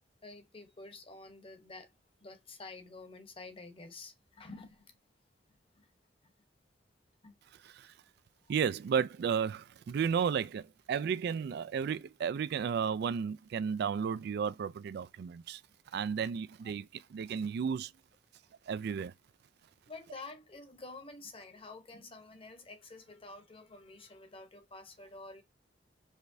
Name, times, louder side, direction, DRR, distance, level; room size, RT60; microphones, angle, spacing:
voice 1, 0.2-1.9 2.2-4.9 5.8-5.9 7.2-7.3 19.9-25.4, left 3 dB, 30° left, 0.9 m, -49 dB
voice 2, 7.6-7.9 8.5-15.6 15.9-17.9 18.7-19.1, right 7 dB, 60° right, 0.3 m, -33 dB
4.9 x 3.3 x 2.6 m
head